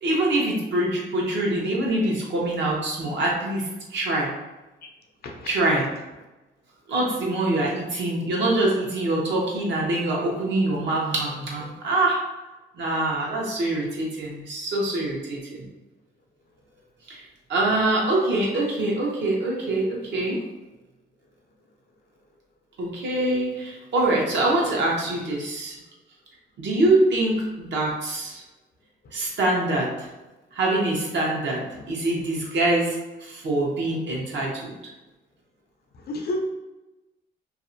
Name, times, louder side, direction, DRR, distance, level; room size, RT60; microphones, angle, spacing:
voice 1, 0.0-4.3 5.5-5.9 6.9-12.2 12.7-15.7 17.1-17.2 17.5-20.4 22.8-25.7 26.6-28.4 29.1-30.1 30.5-34.7, right 2 dB, 65° right, -3 dB, 0.8 m, -24 dB
voice 2, 35.9-36.4, left 1 dB, 55° left, 2 dB, 0.5 m, -31 dB
2.6 x 2.1 x 2.6 m, 1.1 s
cardioid pair, 90°, 20 cm